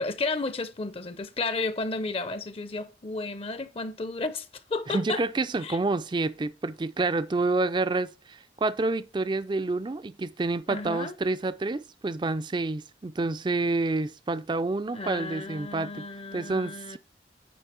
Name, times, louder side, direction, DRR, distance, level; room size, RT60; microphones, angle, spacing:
voice 1, 0.0-5.2 5.6-5.8 10.7-11.1 14.9-17.0, left 3 dB, 35° left, 0.6 m, -32 dB
voice 2, 4.9-16.1 16.3-17.0, right 3 dB, 25° right, 0.4 m, -28 dB
9.4 x 3.3 x 6.9 m
head